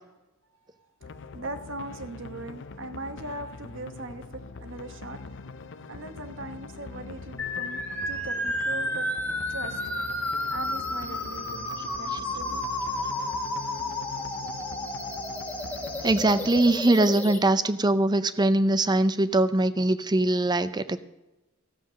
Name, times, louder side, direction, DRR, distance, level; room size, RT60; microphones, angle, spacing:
sound 1, 1.0-16.8, left 4 dB, 60° left, 0.7 m, -43 dB
voice 1, 1.3-5.2 5.9-9.1 9.5-9.8 10.5-12.6 12.9-13.0, right 2 dB, 65° right, 8 dB, 1.2 m, -40 dB
sound 2, 7.4-17.4, left 1 dB, 10° left, 1.7 m, -32 dB
voice 2, 16.0-21.0, right 2 dB, 20° right, 13 dB, 0.5 m, -22 dB
14.0 x 7.4 x 6.2 m, 1.0 s
head